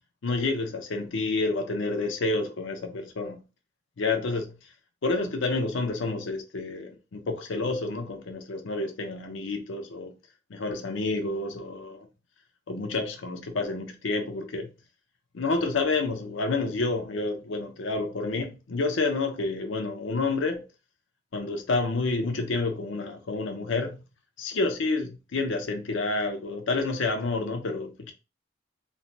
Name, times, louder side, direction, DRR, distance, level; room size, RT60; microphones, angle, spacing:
voice 1, 0.2-3.4 4.0-4.6 5.0-10.1 10.5-12.1 12.7-14.7 15.3-20.6 21.3-24.0 24.4-28.1, left 3 dB, 75° left, 0.5 m, -29 dB
3.1 x 2.1 x 2.6 m
head